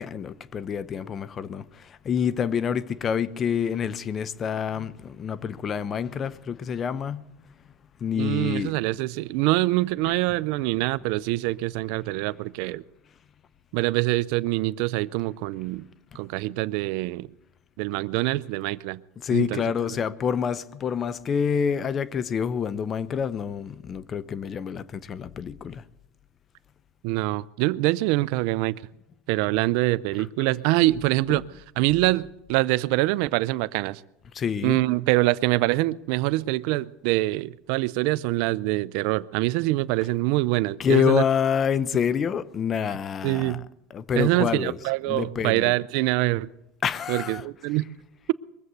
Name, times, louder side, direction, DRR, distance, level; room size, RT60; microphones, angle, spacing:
voice 1, 0.0-7.3 8.0-8.7 16.1-16.2 19.2-25.8 31.3-31.4 34.3-34.8 40.8-43.6 43.9-44.8 45.1-45.7 46.8-47.4, left 7 dB, 35° left, 0.7 m, -27 dB
voice 2, 8.2-12.8 13.7-15.9 16.1-17.3 17.8-19.0 19.3-19.6 27.0-28.8 29.3-31.4 31.8-34.0 34.6-41.2 43.2-43.7 44.2-46.5 47.1-47.9, right 19 dB, 70° right, 0.5 m, -24 dB
22.0 x 7.8 x 8.1 m
supercardioid pair, 115°, 0 cm